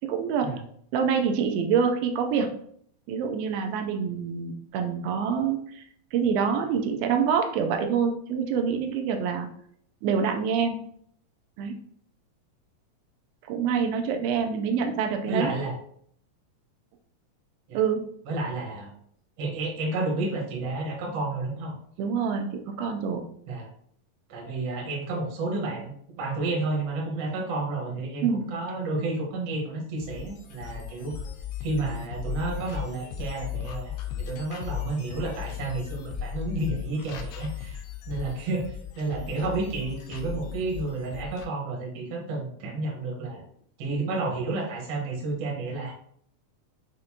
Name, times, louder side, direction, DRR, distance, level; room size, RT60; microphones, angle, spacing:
voice 1, 0.0-0.5 0.9-2.5 3.1-5.8 6.1-9.5 10.0-10.8 11.6-11.7 13.5-15.5 17.7-18.0 22.0-23.2 28.2-28.5, right 6 dB, 85° right, 4 dB, 2.4 m, -26 dB
voice 2, 15.3-15.7 17.7-17.8 18.3-18.9 19.4-21.7 23.5-23.7 24.3-31.1 31.6-43.4 43.8-45.9, right 2 dB, 60° right, -2 dB, 1.6 m, -31 dB
sound 1, 30.0-41.4, left 8 dB, 80° left, 2.4 m, -36 dB
6.4 x 2.5 x 2.8 m, 0.63 s
omnidirectional pair, 4.2 m